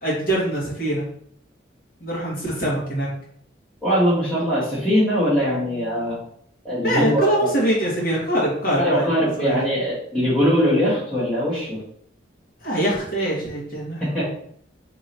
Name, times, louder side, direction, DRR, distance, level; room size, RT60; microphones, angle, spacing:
voice 1, 0.0-1.0 2.0-3.1 6.8-9.1 9.4-9.5 12.6-14.2, right 1 dB, 50° left, -5 dB, 1.5 m, -23 dB
voice 2, 3.8-6.2 6.6-7.5 8.8-11.8 14.0-14.2, equal, ahead, -14 dB, 1.2 m, -21 dB
3.0 x 2.9 x 4.0 m, 0.64 s
head